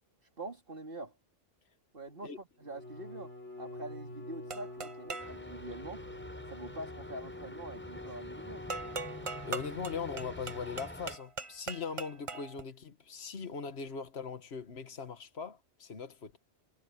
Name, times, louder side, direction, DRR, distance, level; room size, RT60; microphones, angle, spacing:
voice 1, 0.2-1.1 1.9-6.0 6.5-8.8, right 2 dB, 50° right, 3.4 m, -45 dB
Bowed string instrument, 2.6-10.9, left 2 dB, 85° left, 5.2 m, -47 dB
sound 1, 4.5-5.4 8.7-12.6, right 4 dB, 30° right, 0.8 m, -41 dB
sound 2, 5.2-11.2, equal, 10° left, 7.3 m, -47 dB
voice 2, 9.5-16.4, left 5 dB, 65° left, 1.8 m, -40 dB
omnidirectional pair, 1.2 m